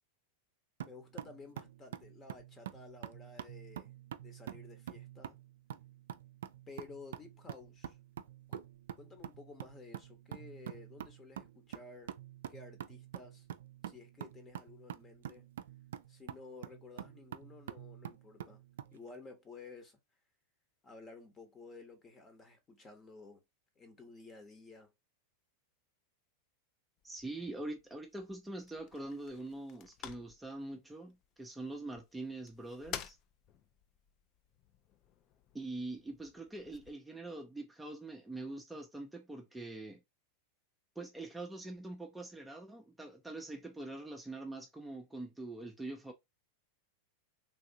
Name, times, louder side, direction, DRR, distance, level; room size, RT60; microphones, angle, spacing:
voice 1, 0.8-3.9 4.2-5.4 6.7-8.0 8.5-8.7 9.0-12.1 12.5-13.5 13.8-15.5 16.1-18.6 18.9-20.0 20.8-23.4 23.8-24.9, left 4 dB, 25° left, 1.1 m, -53 dB
sound 1, 0.8-19.0, right 11 dB, 70° right, 0.3 m, -47 dB
sound 2, 27.0-36.9, left 9 dB, 40° left, 0.4 m, -52 dB
voice 2, 27.0-33.2 35.5-40.0 41.0-46.1, right 2 dB, 5° right, 0.6 m, -44 dB
3.4 x 2.4 x 2.7 m
hypercardioid pair, 95°, 0 cm